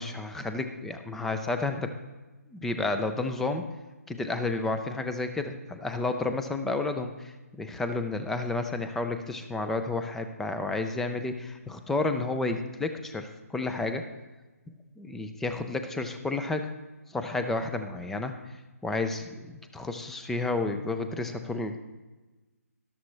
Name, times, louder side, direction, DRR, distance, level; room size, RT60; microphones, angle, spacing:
voice 1, 0.0-1.9 2.5-3.7 4.1-14.1 15.0-16.7 17.1-18.3 18.8-21.8, left 3 dB, 5° left, 7 dB, 0.4 m, -31 dB
12.5 x 12.0 x 3.2 m, 1.2 s
hypercardioid pair, 155°, 9 cm